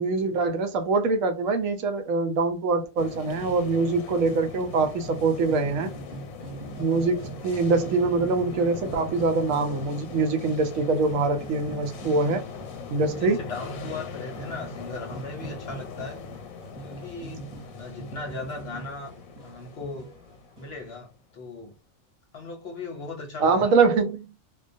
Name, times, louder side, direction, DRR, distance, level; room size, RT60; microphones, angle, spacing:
voice 1, 0.0-5.9 6.8-12.4 12.9-13.5 23.4-24.3, right 3 dB, 75° right, 0.9 m, -24 dB
sound 1, 3.0-21.2, left 4 dB, 85° left, 1.0 m, -40 dB
sound 2, 5.0-7.5 7.8-21.0, right 4 dB, 35° right, 0.8 m, -43 dB
voice 2, 12.8-16.2 16.8-19.1 19.4-20.1 20.6-21.8 22.3-23.8, left 3 dB, 55° left, 0.8 m, -38 dB
2.3 x 2.2 x 2.5 m
omnidirectional pair, 1.4 m